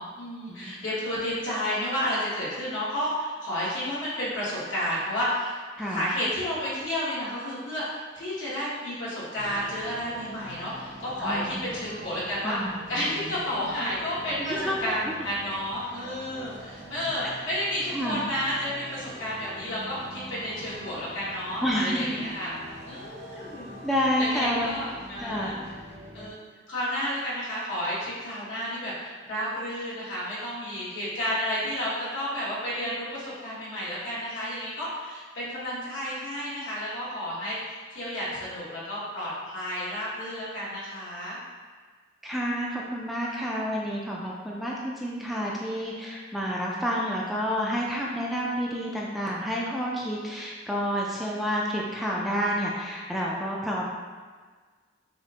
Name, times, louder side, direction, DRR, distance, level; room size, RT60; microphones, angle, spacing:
voice 1, 0.0-5.6 5.9-12.6 12.9-22.5 22.9-23.8 24.2-25.5 26.1-26.4 26.7-41.4, equal, 75° left, -8 dB, 1.4 m, -31 dB
voice 2, 5.8-6.1 11.2-12.0 12.4-13.4 14.4-14.9 15.2-15.3 17.2-17.3 17.9-18.2 21.6-22.1 23.8-24.7 25.2-25.5 42.2-53.9, equal, ahead, -4 dB, 0.3 m, -29 dB
sound 1, 9.4-26.3, equal, 60° right, 0.7 m, -44 dB
5.9 x 2.1 x 2.8 m, 1.5 s
head